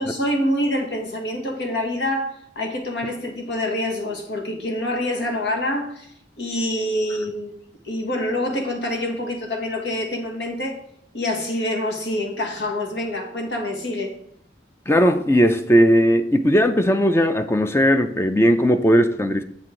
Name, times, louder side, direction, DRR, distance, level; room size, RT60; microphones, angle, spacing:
voice 1, 0.0-6.1 6.4-7.5 7.8-10.8 11.1-14.1, left 1 dB, 75° left, 1.5 m, -26 dB
voice 2, 14.9-19.4, equal, 15° left, 0.4 m, -17 dB
7.5 x 6.2 x 3.8 m
head